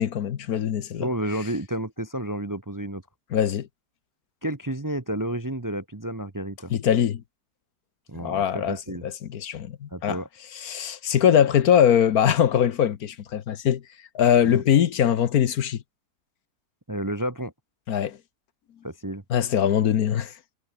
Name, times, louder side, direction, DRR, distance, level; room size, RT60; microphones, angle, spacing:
voice 1, 0.0-1.1 3.3-3.7 6.7-7.2 8.1-10.2 10.5-13.8 14.1-15.8 17.9-18.2 19.3-20.3, left 9 dB, 65° left, 1.4 m, -22 dB
voice 2, 1.0-3.0 4.4-6.7 8.1-9.0 9.9-10.3 14.4-14.6 16.9-17.5 18.8-19.2, right 1 dB, 15° right, 0.8 m, -31 dB
omnidirectional pair, 1.8 m